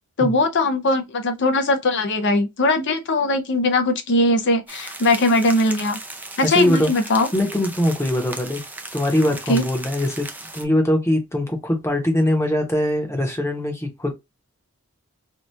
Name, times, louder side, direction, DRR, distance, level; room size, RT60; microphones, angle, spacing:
voice 1, 0.2-6.0 6.4-7.3 9.5-9.6, left 2 dB, 55° left, 0.6 m, -20 dB
sound 1, 4.7-10.6, right 2 dB, 10° right, 0.4 m, -37 dB
voice 2, 6.4-6.9 7.3-8.6 8.9-10.3 10.5-14.1, left 1 dB, 10° left, 0.9 m, -21 dB
2.8 x 2.4 x 3.2 m
head